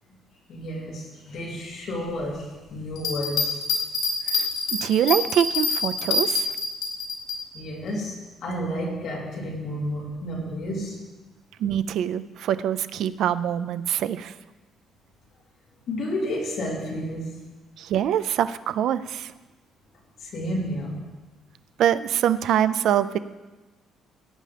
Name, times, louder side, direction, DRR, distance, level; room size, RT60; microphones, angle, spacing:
voice 1, 0.5-3.6 7.5-11.0 15.9-17.4 20.2-21.0, equal, 50° left, -4 dB, 2.9 m, -31 dB
sound 1, 3.0-7.4, left 4 dB, 80° left, 2.5 m, -26 dB
voice 2, 4.3-6.5 11.6-14.3 17.8-19.3 21.8-23.2, right 10 dB, 60° right, 13 dB, 0.4 m, -24 dB
17.0 x 8.7 x 3.4 m, 1.2 s
cardioid pair, 175°, 0 cm